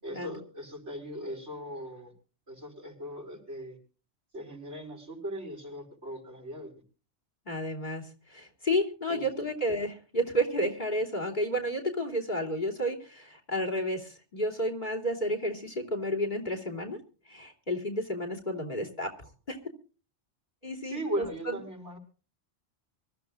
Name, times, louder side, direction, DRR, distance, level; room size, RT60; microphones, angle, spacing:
voice 1, 0.0-2.1 2.5-3.8 4.3-6.7 9.1-9.2 20.8-22.0, equal, 80° right, 3 dB, 5.4 m, -38 dB
voice 2, 7.4-17.0 17.3-19.6 20.6-21.6, equal, 40° left, 5 dB, 3.3 m, -31 dB
24.5 x 14.0 x 2.5 m, 0.37 s
omnidirectional pair, 1.2 m